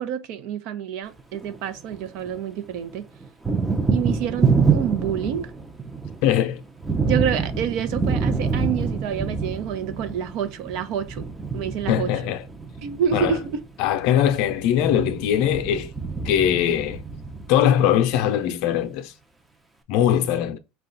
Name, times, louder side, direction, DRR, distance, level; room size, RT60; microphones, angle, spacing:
voice 1, 0.0-3.0 3.9-5.5 7.0-11.3 11.5-12.1 12.8-13.6, right 8 dB, 60° right, 0.7 m, -28 dB
Thunder, 1.2-2.4 2.7-17.9, right 5 dB, 10° right, 0.6 m, -26 dB
voice 2, 6.2-6.6 11.9-12.4 13.1-13.4 13.8-15.9 16.2-17.0 17.5-19.1 19.9-20.6, left 10 dB, 65° left, 0.5 m, -21 dB
4.7 x 2.3 x 3.8 m
supercardioid pair, 120°, 0 cm